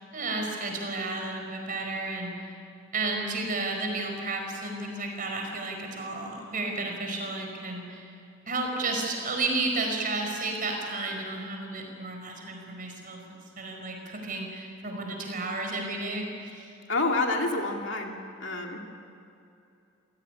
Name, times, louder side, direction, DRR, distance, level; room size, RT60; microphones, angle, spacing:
voice 1, 0.0-2.6 2.9-8.1 8.5-16.7, right 2 dB, 45° right, 2 dB, 5.0 m, -32 dB
voice 2, 16.9-18.1 18.4-18.8, left 2 dB, 60° left, 2 dB, 2.5 m, -28 dB
27.5 x 18.5 x 9.9 m, 2.6 s
head